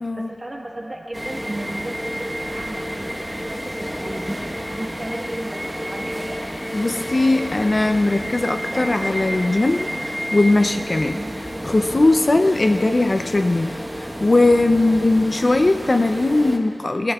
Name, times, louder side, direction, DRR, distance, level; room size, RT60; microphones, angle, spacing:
voice 1, 0.2-4.3 4.8-6.4 11.1-11.4, right 1 dB, 35° right, -2 dB, 1.3 m, -34 dB
sound 1, 1.1-16.6, equal, 10° right, 1.1 m, -30 dB
voice 2, 6.7-11.2 11.6-17.1, left 2 dB, 45° left, 6 dB, 0.4 m, -19 dB
21.0 x 21.0 x 2.3 m, 2.7 s
wide cardioid pair, 75°, 0 cm